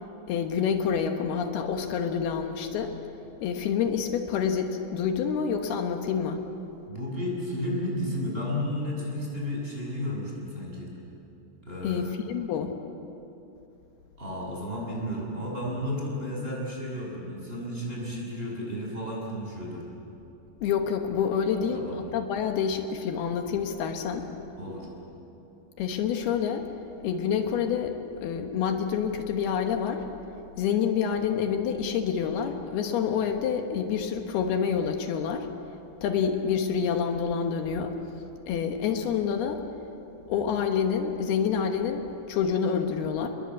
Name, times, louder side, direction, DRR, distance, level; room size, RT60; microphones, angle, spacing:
voice 1, 0.3-2.9 3.4-6.4 11.8-12.7 20.6-24.3 25.8-26.7 27.0-30.1 30.6-35.5 36.0-38.0 38.5-39.6 40.3-43.3, left 7 dB, 80° left, 4 dB, 3.3 m, -27 dB
voice 2, 6.9-10.9 11.6-12.1 14.2-19.8 21.5-22.0 24.6-24.9, left 1 dB, 15° right, -3 dB, 7.1 m, -33 dB
29.5 x 21.5 x 8.5 m, 2.9 s
omnidirectional pair, 4.5 m